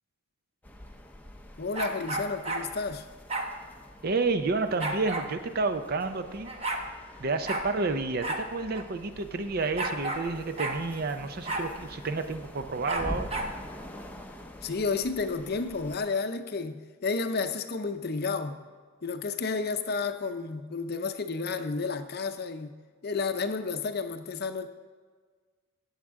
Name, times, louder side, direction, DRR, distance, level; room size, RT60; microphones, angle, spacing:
sound 1, 0.6-16.0, left 1 dB, 10° left, 0.6 m, -45 dB
voice 1, 1.6-3.1 14.6-18.6 19.0-22.7 23.0-24.7, left 4 dB, 50° left, 8 dB, 0.6 m, -31 dB
sound 2, 1.7-2.7 3.3-3.5 4.8-5.3 6.2-6.3 6.4-6.8 7.5-7.7 8.2-8.4 8.7-8.8 9.8-10.3 10.6-10.8 11.5-11.7 12.9-13.5, right 2 dB, 30° right, 0.9 m, -32 dB
voice 2, 4.0-6.5 7.2-13.3, right 3 dB, 45° right, 9 dB, 0.6 m, -30 dB
16.5 x 7.3 x 3.7 m, 1.5 s
head